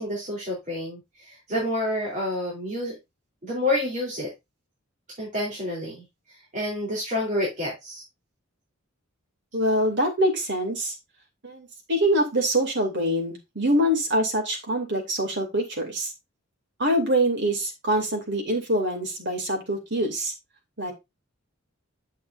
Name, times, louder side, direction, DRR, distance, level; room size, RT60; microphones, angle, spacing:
voice 1, 0.0-3.0 3.4-4.3 5.2-6.0 6.5-8.0, left 1 dB, 40° right, -4 dB, 3.6 m, -28 dB
voice 2, 9.5-10.9 11.4-16.1 16.8-20.3 20.8-20.9, right 1 dB, 60° right, 2 dB, 2.8 m, -24 dB
9.2 x 7.1 x 2.6 m, 0.22 s
head